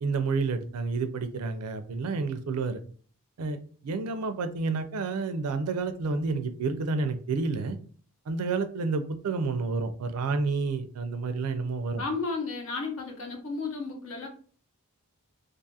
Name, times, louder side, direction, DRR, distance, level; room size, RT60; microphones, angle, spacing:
voice 1, 0.0-2.8 3.4-7.8 8.3-12.0, right 4 dB, 85° right, 9 dB, 0.4 m, -30 dB
voice 2, 12.0-14.3, left 4 dB, 65° left, 2 dB, 0.8 m, -33 dB
2.5 x 2.4 x 2.6 m, 0.43 s
head